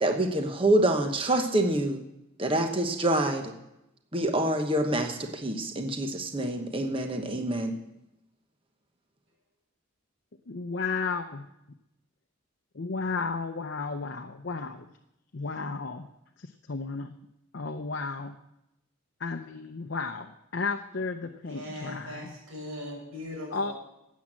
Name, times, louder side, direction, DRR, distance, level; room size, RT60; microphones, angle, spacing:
voice 1, 0.0-2.0 2.4-3.5 4.1-7.8, right 1 dB, 25° right, 5 dB, 1.0 m, -26 dB
voice 2, 10.5-11.5 12.8-14.9 15.3-16.1 16.7-17.2 17.5-18.3 19.2-22.3 23.5-23.7, left 4 dB, 55° left, 6 dB, 0.6 m, -33 dB
voice 3, 21.4-23.7, left 1 dB, 80° right, -1 dB, 5.9 m, -39 dB
12.5 x 8.4 x 7.5 m, 0.87 s
head